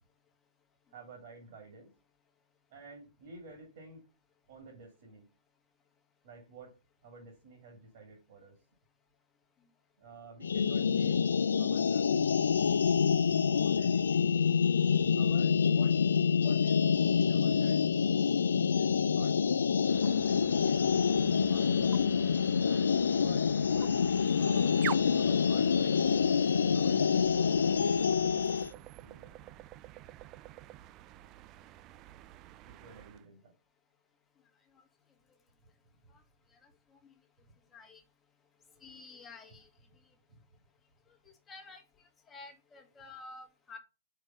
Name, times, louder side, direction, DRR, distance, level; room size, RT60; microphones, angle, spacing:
voice 1, 0.9-1.9 2.7-4.0 4.5-5.3 6.2-6.7 7.0-8.6 10.0-11.3 11.6-12.2 13.4-14.3 15.2-16.0 16.3-16.8 17.2-17.9 18.7-19.5 20.2-21.1 21.5-21.9 22.6-24.9 25.1-26.0 26.7-29.4 32.6-33.5 37.5-37.6 40.3-40.4, right 4 dB, 45° right, 1 dB, 2.2 m, -51 dB
sound 1, 10.4-28.7, left 6 dB, 70° left, 0.3 m, -27 dB
sound 2, 19.8-33.3, right 14 dB, 25° right, 0.3 m, -48 dB
voice 2, 38.8-39.7 41.5-41.8 42.3-43.8, left 3 dB, 15° left, 3 dB, 1.5 m, -50 dB
4.9 x 4.4 x 5.4 m, 0.31 s
figure-of-eight pair, 120°, 0 cm